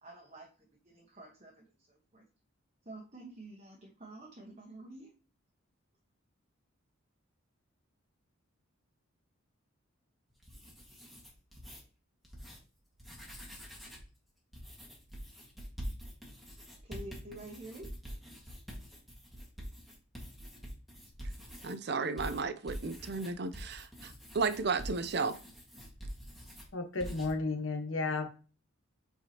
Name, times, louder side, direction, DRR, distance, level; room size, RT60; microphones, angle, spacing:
voice 1, 0.0-2.2 2.8-5.1 16.8-17.9 21.0-21.1, right 2 dB, 35° right, 1.2 m, -49 dB
sound 1, 10.3-11.8 12.2-12.6 12.9-14.1 14.5-21.8 22.2-26.7 27.0-27.3, equal, ahead, 1.7 m, -46 dB
voice 2, 21.6-25.4, right 4 dB, 50° right, 0.5 m, -34 dB
voice 3, 26.7-28.3, left 3 dB, 65° left, 1.2 m, -33 dB
7.9 x 4.7 x 2.9 m
head